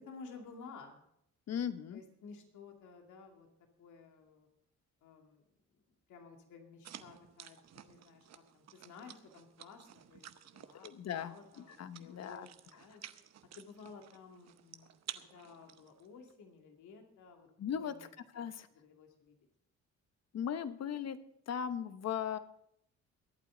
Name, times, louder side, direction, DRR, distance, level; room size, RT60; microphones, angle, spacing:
voice 1, 0.1-1.0 1.9-3.5 3.8-4.5 5.0-5.4 6.1-10.3 10.5-13.0 13.6-17.5 17.8-18.5 18.7-19.4, left 5 dB, 75° left, 3 dB, 2.6 m, -54 dB
voice 2, 1.5-2.0 10.8-11.4 11.8-12.5 17.6-17.9 18.3-18.7 20.3-21.2 21.5-22.4, left 8 dB, 60° left, 11 dB, 1.0 m, -37 dB
sound 1, 6.8-16.3, right 10 dB, 60° right, 0.9 m, -53 dB
23.0 x 8.5 x 3.9 m, 0.72 s
cardioid pair, 90°, 30 cm